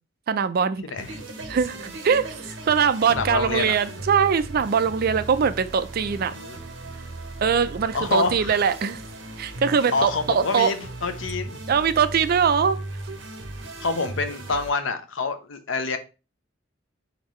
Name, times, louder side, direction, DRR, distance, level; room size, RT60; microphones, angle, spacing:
voice 1, 0.3-0.8 1.5-6.3 7.4-9.0 9.4-10.7 11.7-12.8 13.1-13.2, right 6 dB, 50° right, 0.4 m, -22 dB
voice 2, 0.8-1.2 3.1-3.7 6.1-6.6 7.9-8.6 9.9-10.7 11.0-11.6 13.8-16.0, left 4 dB, 85° left, 0.7 m, -27 dB
sound 1, 1.0-14.7, right 2 dB, 70° right, 1.0 m, -37 dB
4.3 x 3.9 x 3.0 m
head